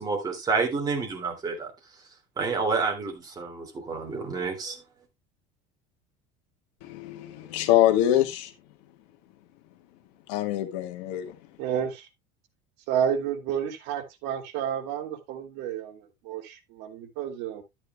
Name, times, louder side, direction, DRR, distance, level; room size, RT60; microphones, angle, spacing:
voice 1, 0.0-1.7 2.4-4.8, right 4 dB, 20° right, 2.5 m, -29 dB
voice 2, 6.8-8.5 10.3-11.3, left 13 dB, 75° left, 1.5 m, -24 dB
voice 3, 11.6-12.1 12.9-17.6, right 9 dB, 55° right, 2.5 m, -30 dB
12.0 x 8.8 x 2.3 m
cardioid pair, 170°, 21 cm